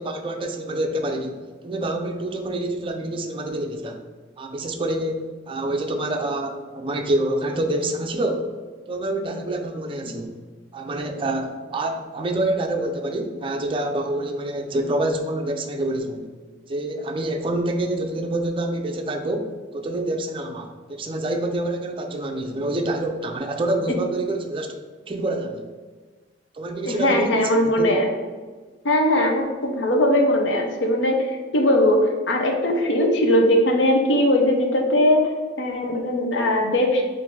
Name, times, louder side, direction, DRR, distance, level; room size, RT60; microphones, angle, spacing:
voice 1, 0.0-4.0 4.4-8.6 8.9-10.3 10.7-16.3 16.7-19.5 19.7-24.7 25.1-25.7 26.5-27.9, right 1 dB, 30° right, 4 dB, 0.4 m, -27 dB
voice 2, 26.8-28.1 28.8-35.3 35.6-37.0, left 1 dB, 75° left, 2 dB, 0.6 m, -20 dB
3.7 x 2.5 x 4.4 m, 1.4 s
head